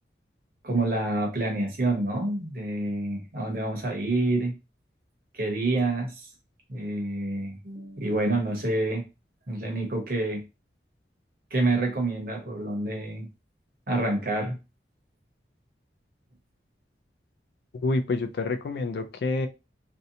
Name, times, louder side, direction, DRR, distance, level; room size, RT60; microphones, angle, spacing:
voice 1, 0.6-4.5 5.3-6.3 6.7-9.0 9.5-10.4 11.5-13.3 13.9-14.6, right 2 dB, 50° right, 0.8 m, -27 dB
voice 2, 17.7-19.5, left 3 dB, 60° left, 0.3 m, -28 dB
2.6 x 2.1 x 2.7 m
head